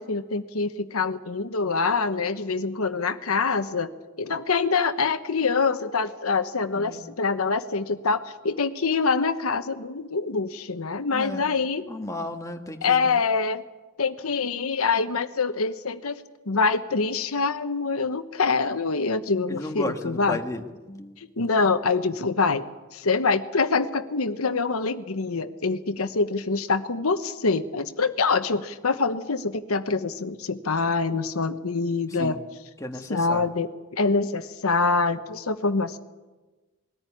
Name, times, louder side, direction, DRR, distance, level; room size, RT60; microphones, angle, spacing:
voice 1, 0.0-3.9 4.2-11.9 12.8-13.6 14.0-16.1 16.5-20.4 21.2-22.6 22.9-32.4 33.1-36.0, left 4 dB, 85° left, 9 dB, 1.1 m, -25 dB
voice 2, 6.7-7.0 11.1-11.5 11.9-13.1 19.5-21.2 32.2-32.4 32.8-33.5, left 1 dB, 15° left, 4 dB, 1.6 m, -34 dB
21.0 x 14.0 x 10.0 m, 1.2 s
head